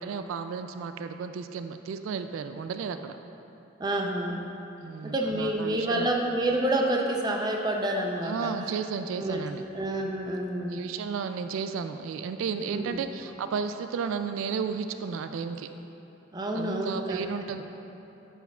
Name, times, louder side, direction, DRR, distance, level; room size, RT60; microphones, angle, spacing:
voice 1, 0.0-3.2 4.8-6.1 8.2-9.6 10.7-15.7 16.5-17.6, right 6 dB, 85° right, 9 dB, 0.3 m, -33 dB
voice 2, 3.8-4.5 5.0-8.5 9.2-9.4 9.7-10.8 12.7-13.0 16.3-17.2, right 1 dB, 20° right, 1 dB, 0.5 m, -28 dB
9.2 x 7.0 x 2.3 m, 3.0 s
head